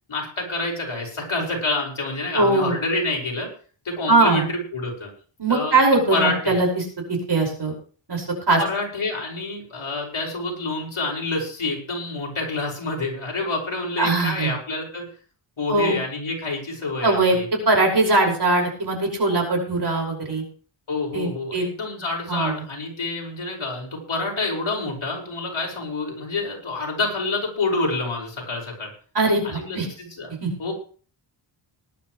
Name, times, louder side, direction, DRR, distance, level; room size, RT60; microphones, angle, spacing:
voice 1, 0.1-3.5 3.8-5.1 5.5-5.8 6.1-6.6 8.6-15.1 15.6-17.5 20.9-28.9 29.4-30.3 30.6-30.7, left 2 dB, 70° left, 0 dB, 5.6 m, -27 dB
voice 2, 2.3-2.8 4.1-4.5 5.4-7.7 8.1-8.6 14.0-14.5 15.7-16.0 17.0-17.4 17.7-20.5 21.1-21.7 22.3-22.7 29.1-29.9 30.4-30.5, right 2 dB, 50° right, 1 dB, 5.4 m, -21 dB
19.5 x 11.5 x 3.2 m, 0.41 s
wide cardioid pair, 105°, 49 cm